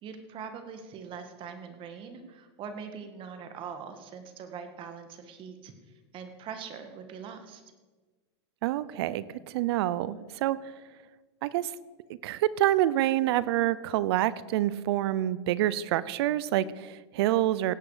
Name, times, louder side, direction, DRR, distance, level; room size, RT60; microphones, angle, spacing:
voice 1, 0.0-5.7 6.1-7.6, right 6 dB, 35° right, 7 dB, 1.8 m, -42 dB
voice 2, 8.6-10.7 11.4-11.7 12.2-17.7, right 13 dB, 65° right, 18 dB, 0.6 m, -27 dB
17.5 x 8.3 x 5.0 m, 1.3 s
supercardioid pair, 125°, 14 cm